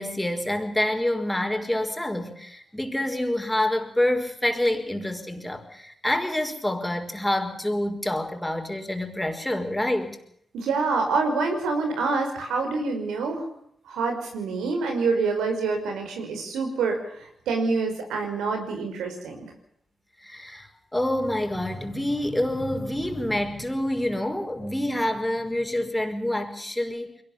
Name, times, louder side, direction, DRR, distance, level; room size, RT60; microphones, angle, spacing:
voice 1, 0.0-10.2 20.2-27.2, left 1 dB, 10° left, 5 dB, 5.0 m, -27 dB
voice 2, 10.5-13.5 13.9-19.5, right 4 dB, 85° right, 4 dB, 5.3 m, -26 dB
22.5 x 18.5 x 7.2 m, 0.71 s
supercardioid pair, 45°, 0 cm